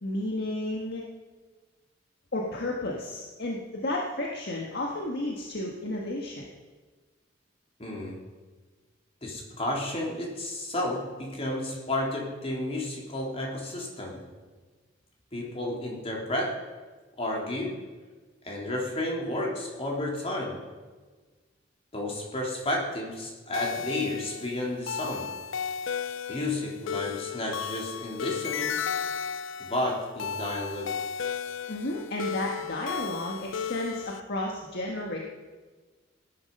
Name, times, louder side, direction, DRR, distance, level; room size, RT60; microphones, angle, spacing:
voice 1, 0.0-1.0 2.3-6.5 31.7-35.2, left 1 dB, 60° left, -1 dB, 1.6 m, -32 dB
voice 2, 7.8-8.2 9.2-14.2 15.3-16.6 17.2-17.8 18.4-20.6 21.9-25.3 26.3-28.8 29.6-31.0, left 1 dB, 30° left, -1 dB, 3.5 m, -32 dB
sound 1, 23.5-34.2, left 7 dB, 85° left, 0.5 m, -34 dB
18.0 x 11.0 x 5.5 m, 1.4 s
head